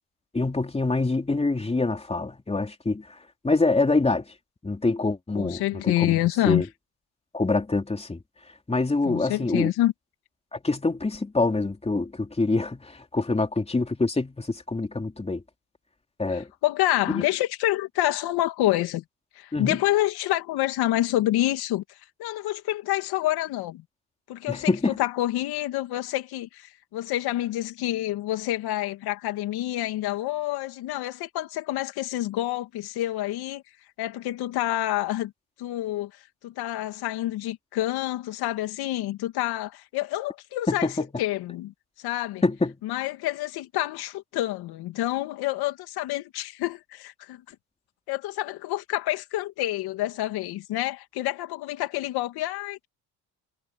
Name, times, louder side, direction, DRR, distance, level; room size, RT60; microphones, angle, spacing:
voice 1, 0.3-3.2 3.4-4.2 4.6-6.7 7.3-8.2 8.7-9.7 10.5-15.4 16.2-16.5 17.1-17.2 19.5-19.8 24.5-25.0 40.7-41.0 42.4-42.7, left 3 dB, 15° left, 3.2 m, -25 dB
voice 2, 5.3-6.6 9.0-9.9 16.3-19.0 19.4-23.8 24.3-24.7 25.0-33.6 34.0-35.3 35.6-40.9 41.2-42.4 42.8-47.6 48.1-52.9, left 15 dB, 80° left, 2.7 m, -28 dB
supercardioid pair, 85°, 37 cm